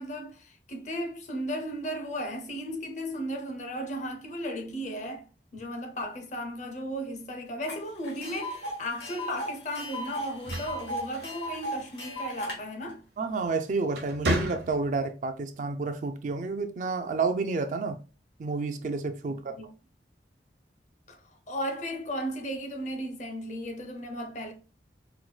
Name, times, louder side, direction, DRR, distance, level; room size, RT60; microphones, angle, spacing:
voice 1, 0.0-5.3 5.5-13.0 19.3-19.7 21.1-21.2 21.5-24.5, equal, 40° left, 0.6 m, -35 dB
Tick, 7.7-7.8 8.0-12.6, equal, 75° left, 1.4 m, -36 dB
sound 1, 10.2-11.8 13.2-13.5 13.9-15.1, right 1 dB, 65° right, 0.7 m, -32 dB
voice 2, 13.2-18.0 18.4-19.6, right 4 dB, 45° right, 0.3 m, -30 dB
4.4 x 2.2 x 2.3 m
head